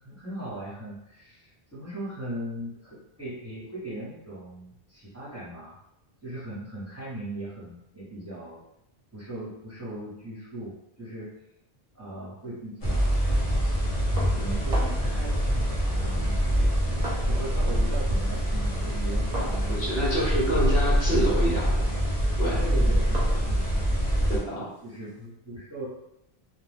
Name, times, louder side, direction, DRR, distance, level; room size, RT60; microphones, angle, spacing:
voice 1, 0.0-5.8 6.2-8.6 9.1-11.3 11.9-13.2 13.6-13.7 14.3-15.4 15.8-16.4 17.1-20.3 22.6-24.2 24.8-25.9, right 1 dB, 15° right, -10 dB, 0.9 m, -39 dB
sound 1, 12.8-24.4, equal, 40° left, 0.8 m, -25 dB
sound 2, 14.2-15.2 16.1-17.6 17.9-25.2, equal, 45° right, 0.7 m, -41 dB
voice 2, 19.7-21.7 22.4-22.6 24.3-24.7, right 1 dB, 65° left, -6 dB, 1.1 m, -27 dB
2.3 x 2.3 x 3.3 m, 0.81 s
omnidirectional pair, 1.1 m